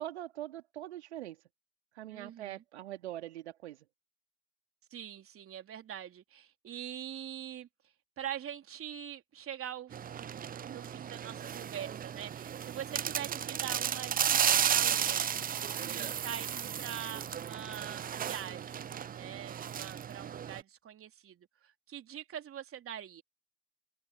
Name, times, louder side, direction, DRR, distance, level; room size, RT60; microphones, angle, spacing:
voice 1, 0.0-1.4 1.9-3.9, right 13 dB, 80° right, 2.6 m, -42 dB
voice 2, 2.1-2.6 4.9-7.7 8.2-23.2, right 10 dB, 40° right, 3.6 m, -44 dB
sound 1, 9.9-20.6, right 9 dB, 25° right, 0.7 m, -34 dB
hypercardioid pair, 70°, 33 cm